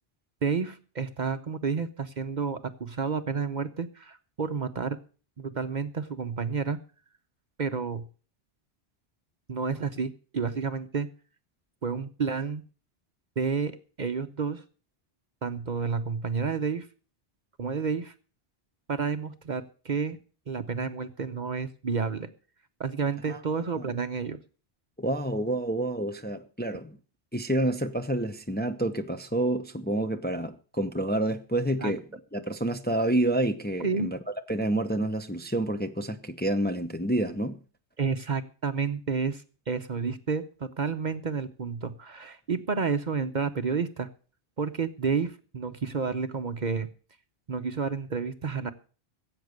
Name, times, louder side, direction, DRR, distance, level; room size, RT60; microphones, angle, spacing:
voice 1, 0.4-5.0 5.4-6.8 7.6-8.1 9.5-11.1 11.8-12.6 13.4-14.6 15.4-16.9 17.6-18.1 18.9-20.2 20.5-22.3 22.8-24.4 31.8-31.9 33.8-34.1 38.0-44.1 44.6-46.9 47.5-48.7, right 5 dB, 45° right, 0.8 m, -30 dB
voice 2, 25.0-27.0 27.3-32.0 32.3-34.2 34.5-37.6, right 1 dB, 10° left, 0.6 m, -28 dB
16.0 x 8.0 x 6.5 m
omnidirectional pair, 1.1 m